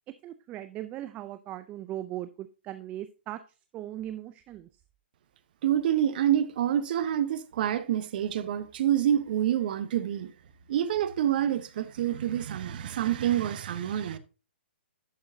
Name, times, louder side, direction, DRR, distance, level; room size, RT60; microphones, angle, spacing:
voice 1, 0.2-3.4 3.7-4.7, right 13 dB, 20° right, 0.4 m, -38 dB
voice 2, 5.6-10.3 10.7-14.2, right 10 dB, 50° right, 0.9 m, -27 dB
11.0 x 6.3 x 2.7 m
hypercardioid pair, 130°, 6 cm